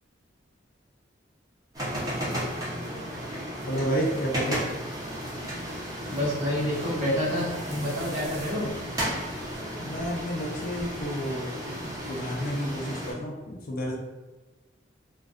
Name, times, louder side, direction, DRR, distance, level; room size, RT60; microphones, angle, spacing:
sound 1, 1.7-13.1, equal, 20° right, 0.6 m, -34 dB
voice 1, 3.7-4.6 9.8-11.6 12.1-14.0, equal, 50° left, -1 dB, 0.4 m, -30 dB
voice 2, 6.1-8.7, left 1 dB, 40° right, -8 dB, 1.2 m, -28 dB
2.5 x 2.1 x 2.4 m, 1.2 s
head